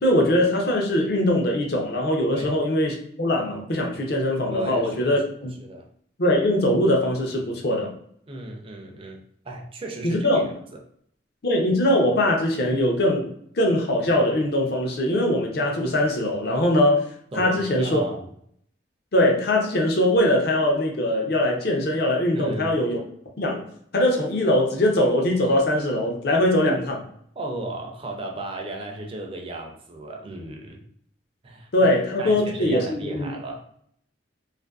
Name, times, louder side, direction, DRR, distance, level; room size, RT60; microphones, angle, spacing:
voice 1, 0.0-5.5 6.2-7.9 10.0-10.5 11.4-13.3 13.6-17.1 17.4-18.0 19.1-23.0 23.4-23.6 23.9-27.0 31.7-33.3, left 1 dB, 55° left, 0 dB, 0.5 m, -21 dB
voice 2, 4.5-5.2 5.6-5.9 8.3-10.8 17.3-18.3 22.3-22.7 26.5-26.8 27.4-30.8 31.4-33.6, right 2 dB, 30° right, 1 dB, 0.4 m, -35 dB
2.5 x 2.5 x 2.3 m, 0.67 s
head